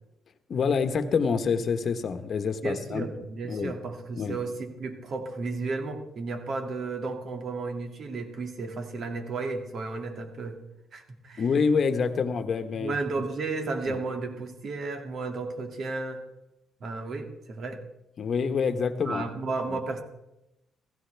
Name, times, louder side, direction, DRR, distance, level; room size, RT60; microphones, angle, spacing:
voice 1, 0.5-3.1 3.5-3.7 4.2-4.4 11.4-13.0 18.2-19.2 19.7-19.8, left 5 dB, 55° left, 9 dB, 1.2 m, -26 dB
voice 2, 2.6-10.6 10.9-11.4 12.7-16.2 16.8-17.8 19.0-20.0, right 3 dB, 55° right, 5 dB, 2.2 m, -33 dB
16.0 x 15.5 x 3.4 m, 0.88 s
cardioid pair, 90°, 0 cm